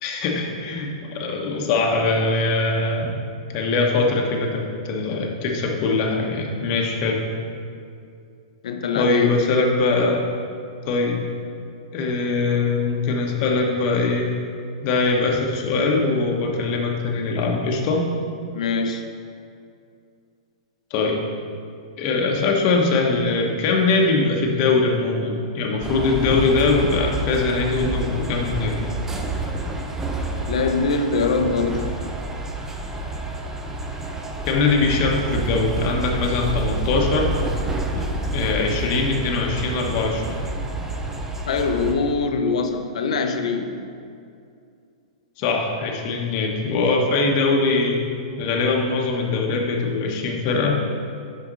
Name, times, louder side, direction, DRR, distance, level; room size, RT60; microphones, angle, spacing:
voice 1, 0.0-3.1 3.5-7.2 8.9-10.2 10.8-11.2 11.9-14.3 14.8-18.1 20.9-21.2 22.0-28.9 34.4-37.3 38.3-40.3 45.4-48.0 48.4-50.8, left 3 dB, 45° left, 0 dB, 1.0 m, -22 dB
voice 2, 8.6-9.4 18.5-19.1 30.5-32.0 41.5-43.8, left 4 dB, 75° left, 6 dB, 0.7 m, -23 dB
sound 1, 25.8-41.9, right 2 dB, 10° right, 0.6 m, -28 dB
5.9 x 5.8 x 3.9 m, 2.4 s
hypercardioid pair, 125°, 4 cm